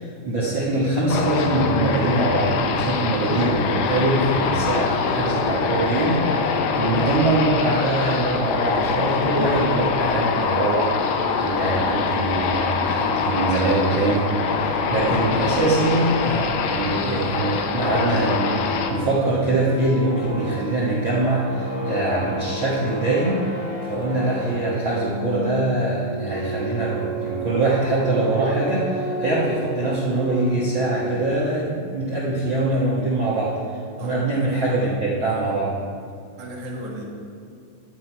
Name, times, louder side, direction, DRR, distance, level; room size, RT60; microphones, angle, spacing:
voice 1, 0.0-23.4 23.8-35.7, right 2 dB, 80° right, -6 dB, 1.0 m, -23 dB
sound 1, 1.1-18.9, left 5 dB, 75° left, 2.4 m, -24 dB
sound 2, 17.8-31.5, left 1 dB, 40° left, 3.9 m, -32 dB
voice 2, 34.0-34.9 36.4-37.0, equal, 55° right, -3 dB, 2.6 m, -35 dB
10.5 x 9.5 x 4.6 m, 2.4 s
omnidirectional pair, 4.8 m